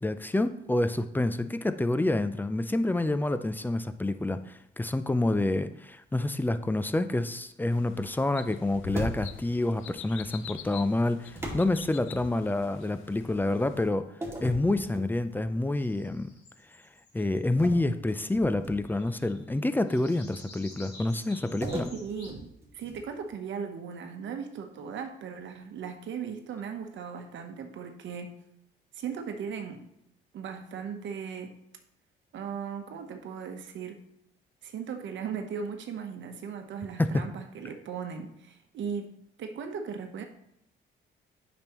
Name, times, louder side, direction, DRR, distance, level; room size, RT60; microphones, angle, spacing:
voice 1, 0.0-14.1 14.4-16.3 17.1-21.9 37.0-37.2, left 2 dB, 10° left, 11 dB, 0.4 m, -28 dB
sound 1, 7.7-13.9, left 10 dB, 80° left, 0.5 m, -46 dB
sound 2, 8.9-9.6 11.4-12.7 14.2-15.5 16.0-16.3 17.6-19.1 21.6-23.3, right 1 dB, 15° right, 2.2 m, -38 dB
sound 3, 15.7-17.4 18.8-19.5 19.7-22.4, left 2 dB, 55° left, 2.7 m, -51 dB
voice 2, 22.0-22.5 22.7-28.3 28.9-29.9 30.3-31.5 32.3-34.0 34.6-39.1 39.4-40.2, right 6 dB, 70° right, 5 dB, 1.0 m, -37 dB
8.7 x 6.1 x 3.0 m, 0.80 s
cardioid pair, 90°, 20 cm